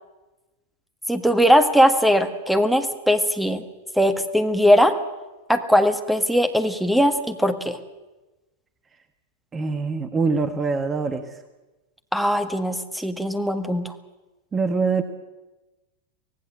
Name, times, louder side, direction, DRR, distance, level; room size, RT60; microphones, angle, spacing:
voice 1, 1.1-3.6 4.0-5.0 5.5-7.8 12.1-13.9, equal, ahead, 8 dB, 1.8 m, -20 dB
voice 2, 9.5-11.2 14.5-15.0, right 4 dB, 20° right, 9 dB, 1.4 m, -23 dB
24.5 x 18.0 x 7.7 m, 1.1 s
figure-of-eight pair, 90°, 0 cm